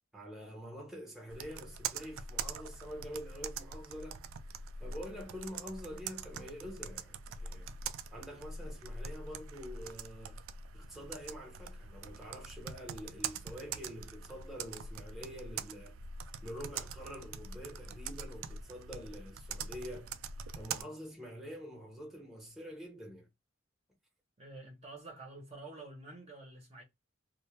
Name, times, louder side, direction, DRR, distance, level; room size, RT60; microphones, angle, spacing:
voice 1, 0.1-4.3 4.8-7.7 8.1-10.4 10.7-16.0 16.4-20.2 20.5-23.3, equal, ahead, 0.8 m, -46 dB
Computer keyboard, 1.3-20.8, right 5 dB, 80° right, 0.3 m, -43 dB
voice 2, 24.4-26.8, right 2 dB, 30° right, 0.7 m, -49 dB
2.1 x 2.1 x 2.9 m
head